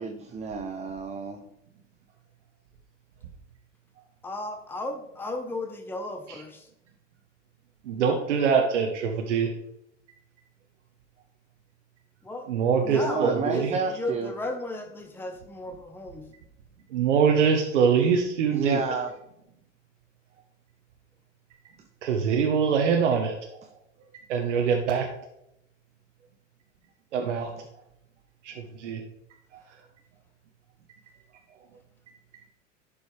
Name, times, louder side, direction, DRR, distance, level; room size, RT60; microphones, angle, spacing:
voice 1, 0.0-1.4 12.8-14.3 18.5-19.2, right 4 dB, 20° right, 5 dB, 0.7 m, -31 dB
voice 2, 4.2-6.7 12.2-12.5 12.9-16.2, left 2 dB, 5° left, 4 dB, 0.9 m, -34 dB
voice 3, 7.9-9.5 12.5-13.7 16.9-18.8 22.0-23.3 24.3-25.1 27.1-27.5 28.4-28.5 28.8-29.0, right 6 dB, 70° right, 2 dB, 1.1 m, -23 dB
11.5 x 5.3 x 3.3 m, 0.80 s
hypercardioid pair, 95°, 37 cm